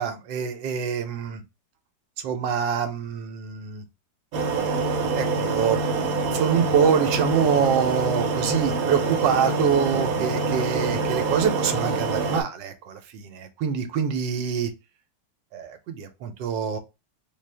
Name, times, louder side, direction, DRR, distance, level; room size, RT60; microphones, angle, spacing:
voice 1, 0.0-1.4 2.2-3.8 4.8-5.8 6.3-14.7 15.5-16.8, right 7 dB, 85° right, 1.4 m, -25 dB
sound 1, 4.3-12.4, right 4 dB, 60° right, 1.1 m, -25 dB
3.8 x 2.4 x 3.2 m
omnidirectional pair, 1.9 m